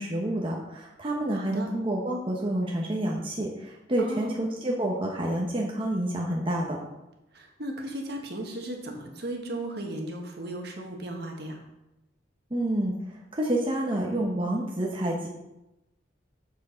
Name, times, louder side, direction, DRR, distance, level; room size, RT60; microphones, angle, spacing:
voice 1, 0.0-6.8 12.5-12.9 13.3-15.3, right 1 dB, 30° right, -1 dB, 0.9 m, -28 dB
voice 2, 1.3-1.7 4.0-4.3 7.3-11.6, right 1 dB, 60° right, 2 dB, 1.4 m, -36 dB
7.0 x 6.1 x 5.1 m, 0.92 s
head